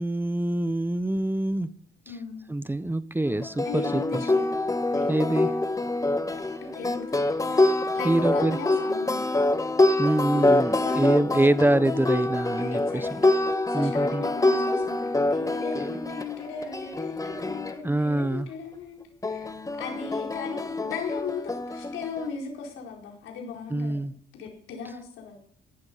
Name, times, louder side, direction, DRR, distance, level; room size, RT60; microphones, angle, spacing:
voice 1, 0.0-1.7 2.1-2.2 2.5-4.2 5.1-5.5 8.0-8.6 10.0-13.2 13.7-14.2 17.8-18.5 23.7-24.1, right 1 dB, 10° right, 15 dB, 0.7 m, -25 dB
voice 2, 2.1-2.5 3.6-4.5 4.9-5.4 6.6-7.7 7.9-9.4 10.8-11.2 12.6-13.2 13.7-19.5 19.8-24.0 24.3-25.4, left 5 dB, 90° left, 0 dB, 4.8 m, -37 dB
sound 1, 3.3-17.8 19.2-22.3, left 2 dB, 15° left, 1.2 m, -26 dB
16.5 x 11.5 x 5.6 m, 0.63 s
cardioid pair, 90°, 20 cm